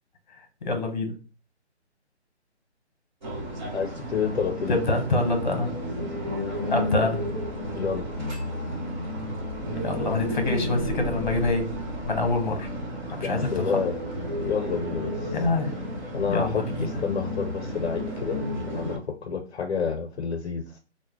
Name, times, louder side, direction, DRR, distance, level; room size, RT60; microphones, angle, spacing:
voice 1, 0.6-1.1 4.7-5.7 6.7-7.2 9.8-11.7 12.0-12.7 13.2-13.8 15.3-15.7 16.2-16.9, left 2 dB, 40° left, 5 dB, 0.9 m, -26 dB
sound 1, 3.2-19.0, equal, 40° right, 0.9 m, -32 dB
voice 2, 3.7-4.8 7.7-8.1 13.2-13.9 14.4-15.3 16.1-18.4 18.7-20.8, left 6 dB, 65° left, 4 dB, 0.5 m, -29 dB
3.0 x 2.1 x 3.5 m, 0.34 s
hypercardioid pair, 165°, 34 cm